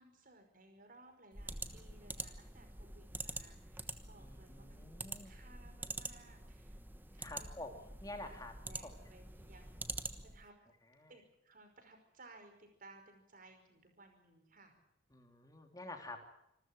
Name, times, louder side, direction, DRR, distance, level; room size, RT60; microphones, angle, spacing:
voice 1, 0.0-6.8 7.1-7.6 7.9-8.0 8.2-9.8 10.2-10.5 11.1-14.7, right 2 dB, 45° right, 6 dB, 5.4 m, -61 dB
sound 1, 1.3-10.5, right 2 dB, 10° right, 1.2 m, -46 dB
voice 2, 4.2-5.3 7.2-8.5 8.8-8.9 11.0-11.1 15.1-16.3, left 2 dB, 20° left, 4 dB, 3.1 m, -48 dB
26.5 x 14.0 x 9.1 m, 0.79 s
head